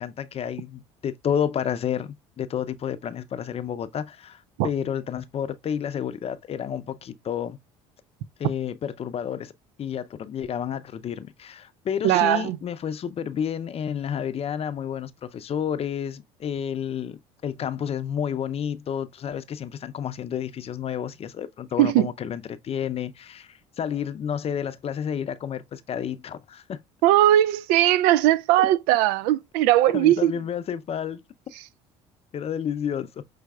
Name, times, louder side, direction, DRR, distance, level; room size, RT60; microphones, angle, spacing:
voice 1, 0.0-7.6 8.4-9.5 9.8-26.8 28.6-28.7 29.9-31.2 32.3-33.2, left 8 dB, 40° left, 0.6 m, -30 dB
voice 2, 12.0-12.6 21.8-22.1 27.0-30.3, right 13 dB, 75° right, 0.4 m, -19 dB
5.7 x 3.2 x 2.3 m
supercardioid pair, 75°, 15 cm